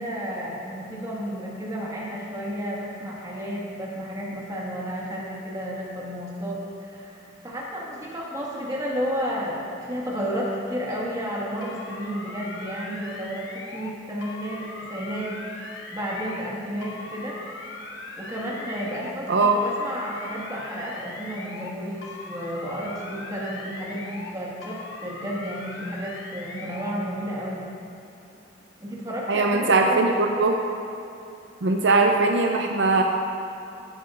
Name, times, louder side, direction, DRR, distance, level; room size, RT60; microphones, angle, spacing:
voice 1, 0.0-17.4 18.2-27.7 28.8-30.3, equal, 20° right, -5 dB, 1.8 m, -32 dB
sound 1, 11.6-13.9 14.2-16.5 16.8-19.1 19.4-21.7 22.0-24.3 24.6-26.9, left 3 dB, 75° left, 1.0 m, -40 dB
voice 2, 19.3-19.6 29.3-30.6 31.6-33.0, right 3 dB, 65° right, 3 dB, 0.6 m, -20 dB
14.0 x 10.0 x 2.5 m, 2.8 s
head